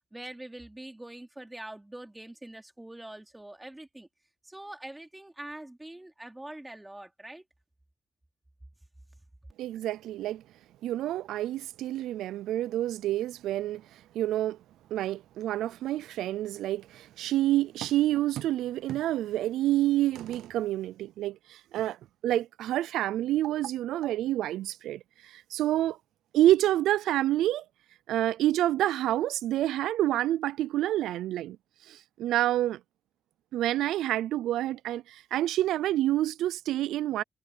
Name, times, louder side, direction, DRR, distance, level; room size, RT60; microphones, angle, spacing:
voice 1, 0.1-4.1 4.4-7.4, right 1 dB, 10° right, 3.0 m, -44 dB
voice 2, 9.6-10.4 10.8-14.6 14.9-22.0 22.2-26.0 26.3-27.6 28.1-31.6 31.8-32.8 33.5-37.2, right 14 dB, 85° right, 0.3 m, -28 dB
cardioid pair, 125°, 0 cm